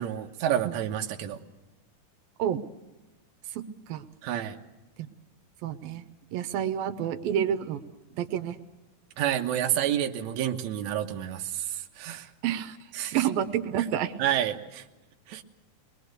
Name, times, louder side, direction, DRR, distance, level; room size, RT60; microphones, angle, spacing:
voice 1, 0.0-1.4 4.2-4.6 9.2-12.3 13.0-13.2 14.2-14.8 15.3-15.4, right 11 dB, 60° right, 3 dB, 2.2 m, -29 dB
voice 2, 5.6-6.0 6.3-7.8 8.1-8.6 12.4-12.8 13.1-14.1, right 10 dB, 80° right, 10 dB, 2.8 m, -29 dB
24.0 x 21.5 x 6.7 m, 1.1 s
omnidirectional pair, 4.1 m